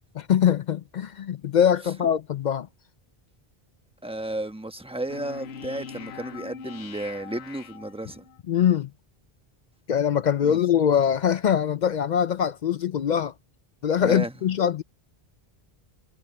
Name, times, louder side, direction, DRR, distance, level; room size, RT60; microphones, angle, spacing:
voice 1, 0.3-2.7 8.5-8.9 9.9-13.3 13.8-14.8, left 8 dB, 55° left, 0.5 m, -22 dB
voice 2, 4.0-8.2 10.4-10.6 14.0-14.3, right 1 dB, 5° right, 1.1 m, -33 dB
sound 1, 5.1-8.4, left 6 dB, 85° left, 1.1 m, -41 dB
omnidirectional pair, 1.0 m